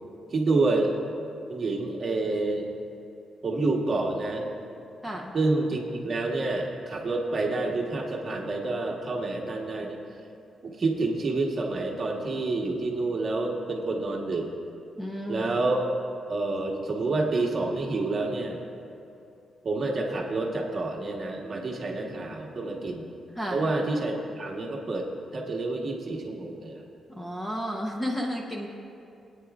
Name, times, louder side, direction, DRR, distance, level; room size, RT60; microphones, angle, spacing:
voice 1, 0.3-0.9 1.5-2.7 3.4-4.5 5.3-10.0 10.6-14.5 15.3-15.9 16.3-18.6 19.6-23.0 23.5-26.8, right 2 dB, 35° right, 0 dB, 1.2 m, -28 dB
voice 2, 5.0-5.3 15.0-15.5 23.4-23.6 27.2-28.7, equal, 5° left, -1 dB, 0.8 m, -32 dB
22.5 x 9.0 x 2.4 m, 2.6 s
wide cardioid pair, 165°, 0 cm